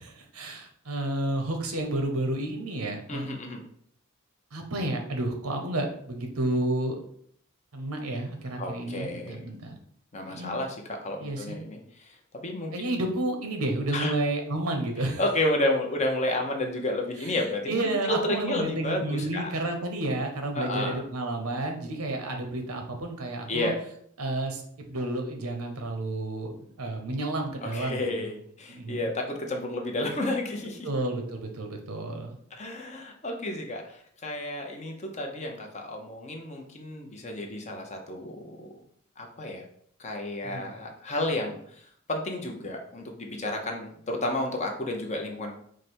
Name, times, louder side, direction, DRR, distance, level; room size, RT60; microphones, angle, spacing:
voice 1, 0.0-3.4 4.5-7.0 7.7-9.7 10.3-10.6 11.2-11.6 12.7-15.2 17.2-17.4 17.7-23.7 24.2-24.6 24.9-26.5 26.8-28.1 28.7-29.1 30.8-32.4 40.4-40.7, right 1 dB, 90° right, 4 dB, 0.8 m, -31 dB
voice 2, 3.1-3.6 8.6-9.4 10.1-12.9 13.9-14.1 15.2-19.5 20.6-21.0 23.5-23.7 27.6-30.9 32.5-38.7 39.2-39.6 40.0-45.5, left 1 dB, 30° left, 2 dB, 0.7 m, -31 dB
4.9 x 2.1 x 4.3 m, 0.64 s
head